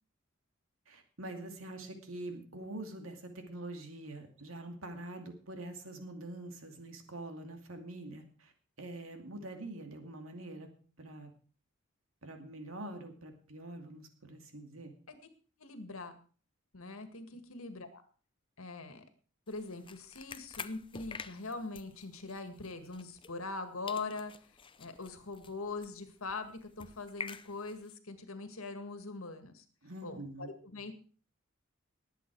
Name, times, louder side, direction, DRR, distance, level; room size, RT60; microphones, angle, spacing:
voice 1, 0.9-8.5 8.8-10.7 11.0-11.3 12.2-14.9 29.8-30.5, right 2 dB, 75° right, 5 dB, 2.4 m, -45 dB
voice 2, 15.6-16.1 16.7-18.0 18.6-19.0 19.5-29.7 30.0-30.9, left 3 dB, 80° left, 8 dB, 1.9 m, -42 dB
sound 1, 19.5-23.6 23.9-28.0, left 6 dB, 25° left, 0.6 m, -49 dB
19.5 x 8.2 x 4.7 m, 0.40 s
head